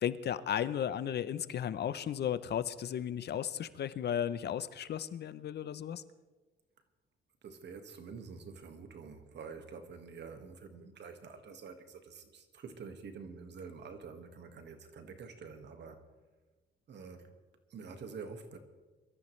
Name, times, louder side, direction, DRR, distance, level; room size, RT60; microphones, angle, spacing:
voice 1, 0.0-6.0, left 9 dB, 55° left, 15 dB, 0.7 m, -35 dB
voice 2, 7.4-16.0 16.9-17.4 17.7-18.6, right 5 dB, 60° right, 7 dB, 1.8 m, -47 dB
23.0 x 13.5 x 3.2 m, 1.3 s
cardioid pair, 90°, 20 cm